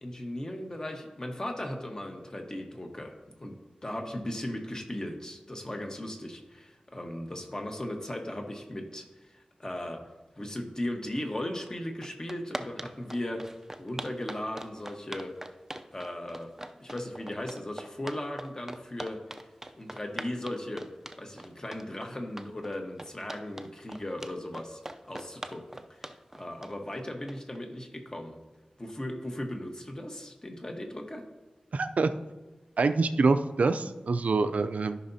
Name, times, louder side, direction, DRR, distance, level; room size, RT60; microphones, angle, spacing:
voice 1, 0.0-3.1 3.4-3.5 3.8-10.0 10.4-13.4 13.8-15.3 15.9-16.5 16.8-19.2 19.7-20.9 21.2-24.8 25.1-25.8 26.3-28.4 28.8-31.2, left 1 dB, 30° left, 3 dB, 1.2 m, -37 dB
sound 1, 11.7-11.8 12.0-27.6, right 1 dB, 15° right, 0.5 m, -41 dB
voice 2, 31.7-32.1 32.8-35.0, right 3 dB, 75° right, 9 dB, 0.4 m, -25 dB
13.5 x 5.8 x 2.7 m, 1.2 s
wide cardioid pair, 85°, 2 cm